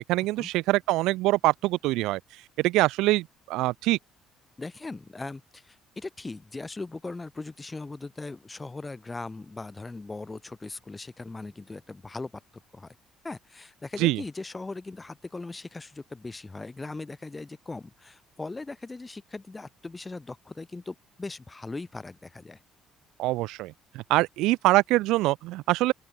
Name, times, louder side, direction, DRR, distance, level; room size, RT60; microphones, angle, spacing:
voice 1, 0.0-2.2 2.6-4.0 14.0-14.2 23.2-25.9, right 18 dB, 85° right, 1.0 m, -24 dB
voice 2, 4.6-12.4 12.7-12.9 13.2-22.6, left 3 dB, 15° left, 4.8 m, -39 dB
open air
cardioid pair, 115°, 0 cm